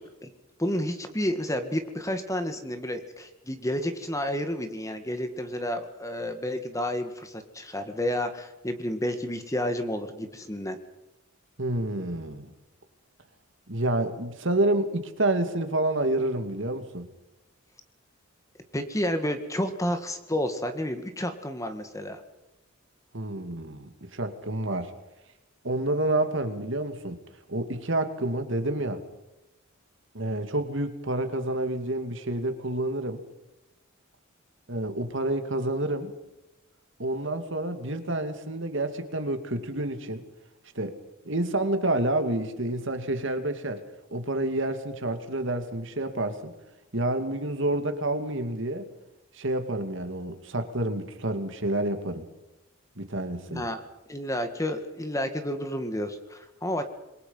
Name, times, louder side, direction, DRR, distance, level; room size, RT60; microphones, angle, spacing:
voice 1, 0.6-10.8 18.7-22.2 53.5-53.8 54.1-56.8, left 1 dB, 15° left, 8 dB, 1.8 m, -30 dB
voice 2, 11.6-12.5 13.7-17.1 23.1-24.9 25.6-27.2 27.5-29.0 30.1-33.2 34.7-36.1 37.0-40.2 40.7-41.0 41.3-43.8 44.1-46.5 46.9-48.8 49.3-52.2 53.0-53.7, right 1 dB, 60° right, 8 dB, 2.3 m, -28 dB
27.0 x 22.0 x 5.7 m, 0.98 s
head